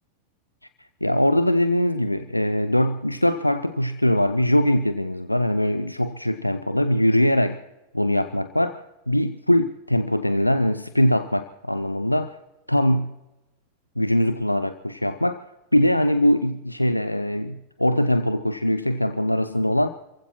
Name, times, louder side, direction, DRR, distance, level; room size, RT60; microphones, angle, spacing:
voice 1, 0.8-7.6 7.9-12.4 12.7-13.1 14.0-15.4 15.7-19.9, left 1 dB, 85° left, 11 dB, 0.5 m, -22 dB
29.5 x 15.5 x 3.0 m, 1.0 s
figure-of-eight pair, 90°, 0 cm